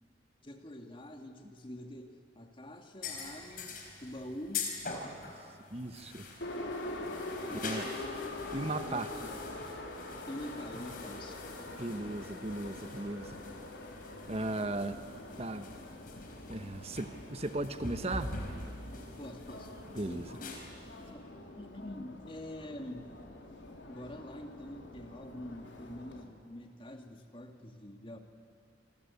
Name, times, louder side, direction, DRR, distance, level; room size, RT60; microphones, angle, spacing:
voice 1, 0.4-4.7 5.0-5.2 7.4-8.4 8.8-9.4 10.3-11.4 19.2-19.7 20.0-20.3 21.0-21.3 21.6-23.1 23.9-28.2, left 1 dB, 30° left, 5 dB, 2.1 m, -45 dB
sound 1, 3.0-21.1, left 4 dB, 50° left, 4.2 m, -45 dB
voice 2, 5.7-6.3 7.5-7.9 8.5-9.1 11.8-13.4 14.3-15.0 15.4-15.7 16.5-18.4 19.9-20.3, right 2 dB, 35° right, 10 dB, 1.2 m, -36 dB
Subway metro underground, 6.4-26.2, left 2 dB, 80° left, 3.6 m, -45 dB
27.0 x 23.5 x 8.4 m, 2.6 s
head